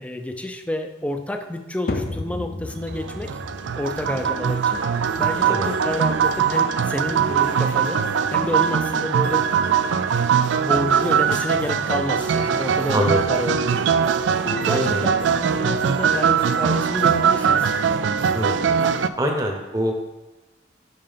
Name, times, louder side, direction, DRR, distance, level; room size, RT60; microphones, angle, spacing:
voice 1, 0.0-3.3 3.8-4.8 5.2-8.0 8.3-9.7 10.5-14.0 14.4-17.7, left 1 dB, 5° left, 6 dB, 0.5 m, -29 dB
sound 1, 1.9-18.3, left 2 dB, 55° left, 0.6 m, -39 dB
sound 2, 2.9-19.1, right 7 dB, 85° right, 0.3 m, -21 dB
voice 2, 14.7-15.0 18.3-18.7 19.2-19.9, equal, 20° right, 3 dB, 0.9 m, -23 dB
5.6 x 5.5 x 5.2 m, 1.1 s
head